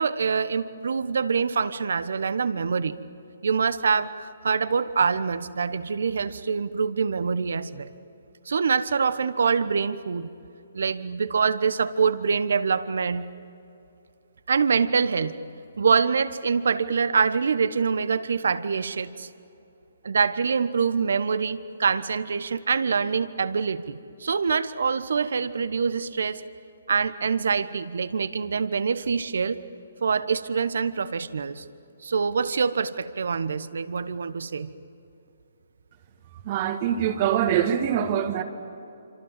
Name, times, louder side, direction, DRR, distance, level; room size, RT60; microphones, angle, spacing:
voice 1, 0.0-2.9 3.4-7.9 8.5-10.3 10.7-13.3 14.5-15.4 15.8-19.3 20.0-26.4 26.9-29.6 30.0-31.6 32.0-34.7, right 5 dB, 65° right, 14 dB, 1.1 m, -25 dB
voice 2, 36.4-38.4, right 9 dB, 40° right, 6 dB, 1.8 m, -24 dB
27.0 x 26.5 x 7.5 m, 2.7 s
figure-of-eight pair, 135°, 0 cm